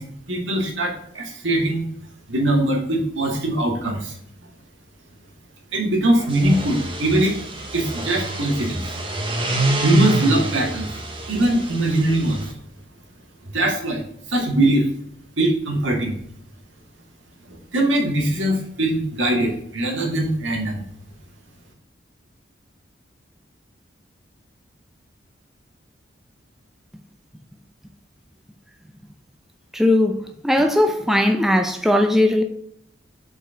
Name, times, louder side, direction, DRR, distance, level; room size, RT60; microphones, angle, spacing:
voice 1, 0.0-1.9 2.3-4.1 5.7-7.4 7.7-8.8 9.8-10.9 11.3-12.5 13.4-14.9 15.4-16.2 17.5-20.8, right 1 dB, 85° right, 2.2 m, -21 dB
sound 1, 6.2-12.5, right 2 dB, 25° right, 0.9 m, -27 dB
voice 2, 29.7-32.4, left 1 dB, ahead, 0.5 m, -18 dB
6.6 x 5.1 x 3.8 m
head